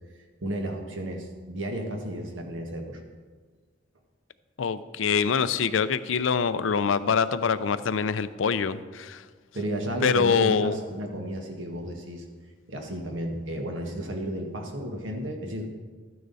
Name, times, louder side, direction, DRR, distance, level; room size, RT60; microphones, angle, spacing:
voice 1, 0.4-3.0 9.5-12.2 12.7-15.7, right 1 dB, 80° right, 3 dB, 1.6 m, -33 dB
voice 2, 4.6-9.2 10.0-10.7, left 6 dB, 90° left, 14 dB, 0.5 m, -24 dB
13.0 x 9.5 x 4.1 m, 1.5 s
head